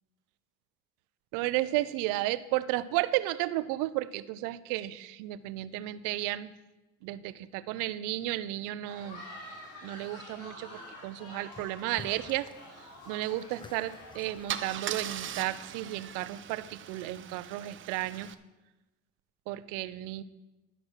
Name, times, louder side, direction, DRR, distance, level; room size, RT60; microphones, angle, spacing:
voice 1, 1.3-6.5 7.0-9.2 9.8-12.5 13.1-18.3 19.5-20.2, right 16 dB, 80° right, 15 dB, 0.6 m, -33 dB
sound 1, 8.9-14.7, left 1 dB, 75° left, 3.6 m, -48 dB
sound 2, 11.5-11.7 12.0-12.6 12.9-16.3, left 3 dB, 15° left, 0.8 m, -52 dB
Car / Engine starting / Idling, 13.8-14.0 14.5-18.3, right 10 dB, 40° right, 0.7 m, -40 dB
11.5 x 6.0 x 6.4 m, 1.1 s
supercardioid pair, 105°, 31 cm